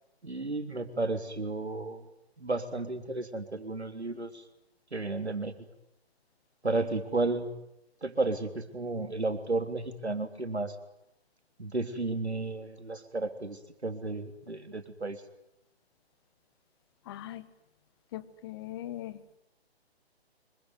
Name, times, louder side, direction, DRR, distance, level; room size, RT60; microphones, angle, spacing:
voice 1, 0.2-2.0 2.4-4.4 4.9-5.7 6.6-7.5 8.0-10.8 11.6-15.2, right 3 dB, 80° right, 8 dB, 3.7 m, -33 dB
voice 2, 17.0-17.5 18.1-19.2, left 13 dB, 25° left, 14 dB, 1.3 m, -40 dB
25.5 x 23.5 x 9.5 m, 0.83 s
figure-of-eight pair, 140°, 32 cm